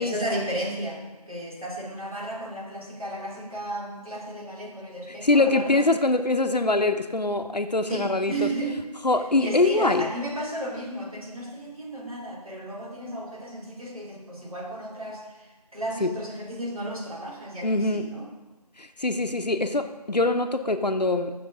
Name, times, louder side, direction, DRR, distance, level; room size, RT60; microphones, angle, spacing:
voice 1, 0.0-5.8 7.9-8.8 9.4-18.3, right 1 dB, 60° right, -3 dB, 2.6 m, -34 dB
voice 2, 5.1-8.5 9.0-10.1 16.0-16.1 17.6-18.0 18.8-21.3, left 2 dB, 85° left, 8 dB, 0.9 m, -23 dB
15.0 x 6.6 x 3.7 m, 1.2 s
figure-of-eight pair, 175°, 21 cm